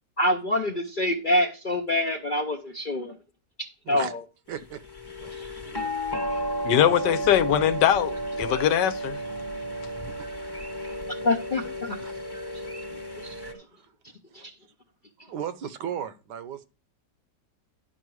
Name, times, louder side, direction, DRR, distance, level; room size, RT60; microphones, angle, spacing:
voice 1, 0.2-3.1 3.9-4.2 5.4-5.5 11.1-12.0 12.5-12.6 12.9-13.4 14.3-14.5, left 1 dB, 55° left, 0.5 m, -26 dB
voice 2, 4.5-4.8 5.2-5.9 6.2-6.6 6.8-7.4 12.0-12.1 13.3-13.8 15.2-16.7, right 8 dB, 75° right, 1.4 m, -38 dB
sound 1, 4.7-13.5, equal, 15° left, 0.9 m, -33 dB
voice 3, 6.6-9.2, left 10 dB, 85° left, 1.4 m, -22 dB
11.0 x 5.8 x 4.7 m
omnidirectional pair, 1.8 m